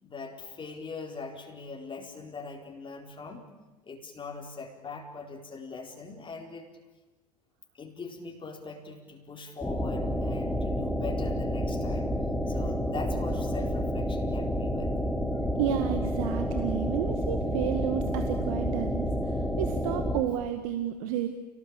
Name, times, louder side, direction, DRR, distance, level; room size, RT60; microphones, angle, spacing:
voice 1, 0.0-3.5 3.8-6.7 7.7-12.1 12.5-14.9, left 4 dB, 25° left, 1 dB, 4.4 m, -41 dB
sound 1, 9.6-20.2, equal, 5° left, 3.6 m, -29 dB
voice 2, 15.6-21.3, right 11 dB, 65° right, 7 dB, 1.9 m, -31 dB
29.0 x 19.0 x 8.8 m, 1.2 s
figure-of-eight pair, 75°, 20 cm